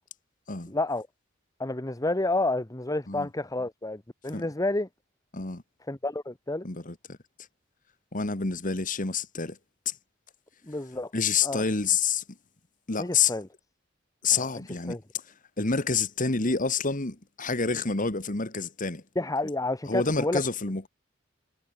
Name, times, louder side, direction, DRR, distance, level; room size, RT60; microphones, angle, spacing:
voice 1, 0.7-1.1 1.6-4.9 5.9-6.7 10.6-11.1 11.4-11.6 13.0-13.5 14.3-15.0 19.1-20.4, left 2 dB, 15° left, 1.1 m, -30 dB
voice 2, 6.6-7.2 8.1-9.6 9.8-9.9 11.1-12.2 12.9-13.3 14.2-15.0 15.6-19.0 19.9-20.9, left 5 dB, 40° left, 1.8 m, -28 dB
head